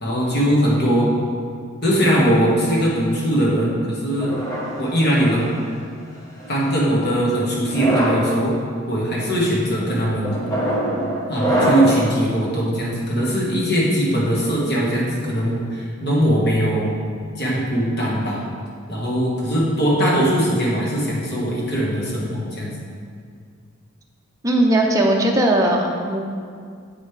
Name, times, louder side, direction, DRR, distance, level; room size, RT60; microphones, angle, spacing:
voice 1, 0.0-1.1 1.8-4.3 4.8-5.5 6.5-8.5 8.9-10.4 11.3-17.0 17.4-18.4 18.9-22.7, equal, 50° left, -5 dB, 1.4 m, -20 dB
sound 1, 4.2-5.6 6.4-6.8 7.6-8.3 9.0-9.3 10.2-12.1, right 1 dB, 15° left, 0.9 m, -23 dB
voice 2, 24.4-26.2, right 1 dB, 15° right, -1 dB, 0.5 m, -18 dB
8.0 x 5.2 x 3.3 m, 2.1 s
head